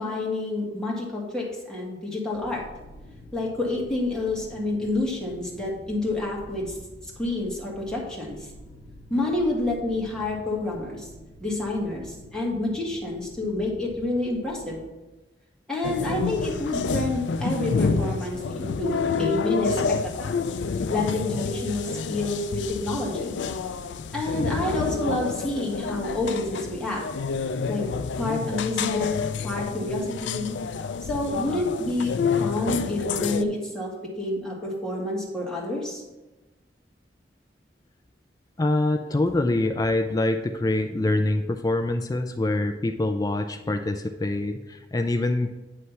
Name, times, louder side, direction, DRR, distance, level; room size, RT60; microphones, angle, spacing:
voice 1, 0.0-2.6 3.3-6.8 7.2-8.4 9.1-11.1 11.4-14.8 15.7-20.4 20.8-23.4 24.1-27.0 27.7-27.8 28.2-29.2 29.4-30.5 31.0-32.1 32.4-36.0, left 2 dB, 5° left, -4 dB, 1.7 m, -28 dB
sound 1, 2.3-14.8, equal, 65° right, 2.7 m, -47 dB
sound 2, 15.8-33.4, left 5 dB, 80° left, 0.4 m, -29 dB
voice 2, 38.6-45.5, left 2 dB, 20° left, 6 dB, 0.4 m, -25 dB
9.4 x 3.3 x 5.6 m, 1.1 s
head